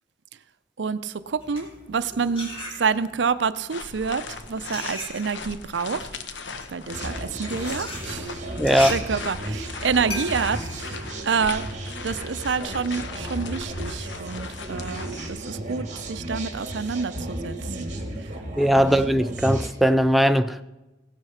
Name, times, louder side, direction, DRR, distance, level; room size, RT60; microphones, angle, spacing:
voice 1, 0.8-6.1 6.7-8.3 8.9-11.7 12.0-18.0 18.8-19.1, right 5 dB, 75° right, 0.6 m, -28 dB
sound 1, 1.3-3.3 4.0-11.9, left 1 dB, 30° left, 3.1 m, -37 dB
sound 2, 3.7-15.3, left 4 dB, 85° left, 0.9 m, -38 dB
sound 3, 6.9-19.7, right 1 dB, 40° right, 1.7 m, -34 dB
voice 2, 8.6-8.9 18.6-20.6, equal, ahead, 0.3 m, -19 dB
16.5 x 8.0 x 5.7 m
head